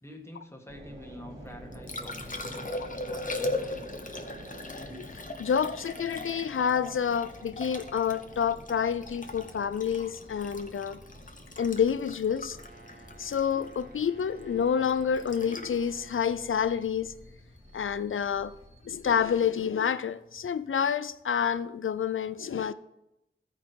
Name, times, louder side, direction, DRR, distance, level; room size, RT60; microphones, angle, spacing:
voice 1, 0.0-3.8, left 1 dB, 10° left, 1.6 m, -47 dB
sound 1, 0.7-19.6, equal, 25° right, 3.2 m, -49 dB
Liquid, 1.5-17.6 20.4-20.5, left 2 dB, 40° left, 0.9 m, -39 dB
voice 2, 5.0-11.0 11.6-12.6 13.2-17.1 17.7-18.5 18.8-22.7, left 7 dB, 75° left, 0.4 m, -28 dB
Brass instrument, 12.5-16.6, right 2 dB, 40° right, 1.5 m, -55 dB
14.0 x 4.8 x 4.6 m
wide cardioid pair, 40°, 21 cm